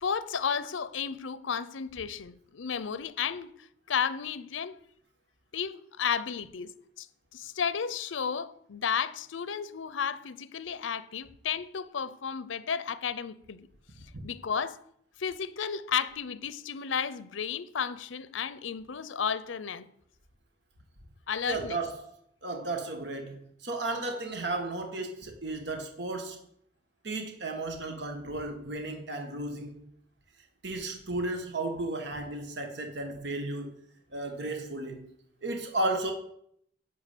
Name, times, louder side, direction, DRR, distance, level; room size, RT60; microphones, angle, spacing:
voice 1, 0.0-3.5 3.9-4.8 5.5-6.7 7.0-7.1 7.3-13.7 14.2-14.8 15.2-19.9 21.3-21.8, left 7 dB, 85° left, 0.6 m, -33 dB
voice 2, 21.4-22.0 22.4-26.4 27.0-29.7 30.6-33.8 34.1-35.0 35.4-36.1, right 2 dB, 60° right, 1.6 m, -34 dB
11.0 x 4.9 x 8.3 m
head